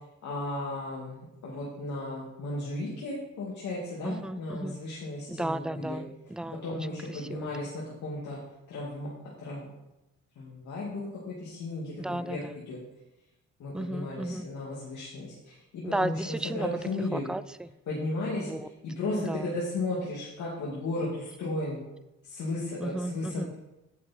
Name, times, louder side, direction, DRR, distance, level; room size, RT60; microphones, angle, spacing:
voice 1, 0.2-1.2 1.4-6.0 6.6-8.4 8.7-9.1 9.4-9.7 10.4-12.8 13.6-17.3 17.9-18.5 18.8-21.8 22.2-23.5, left 2 dB, 70° left, -5 dB, 2.3 m, -35 dB
voice 2, 4.0-4.8 5.3-7.5 12.0-12.5 13.7-14.5 15.8-16.7 17.1-17.7 18.4-18.7 19.3-19.6 22.8-23.5, right 1 dB, 5° right, 15 dB, 0.3 m, -34 dB
9.7 x 6.9 x 4.3 m, 0.93 s
cardioid pair, 90°, 30 cm